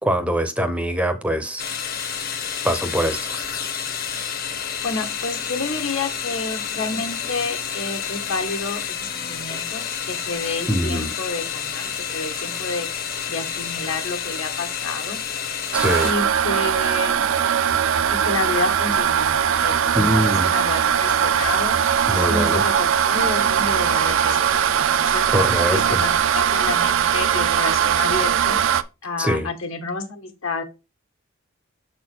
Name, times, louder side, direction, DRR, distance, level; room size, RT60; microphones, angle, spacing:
voice 1, 0.0-1.7 2.6-3.4 10.7-11.1 15.7-16.1 19.9-20.5 22.1-22.7 25.3-26.0 29.2-29.5, equal, 5° right, 0.6 m, -23 dB
sound 1, 1.6-16.1, left 7 dB, 45° left, 1.0 m, -29 dB
voice 2, 4.8-12.9 13.3-15.2 16.0-17.3 18.1-19.9 20.3-21.7 22.1-25.2 25.7-28.6 29.0-30.6, left 3 dB, 70° left, 1.5 m, -30 dB
sound 2, 15.7-28.8, right 8 dB, 65° right, 0.4 m, -20 dB
6.9 x 4.2 x 4.3 m
head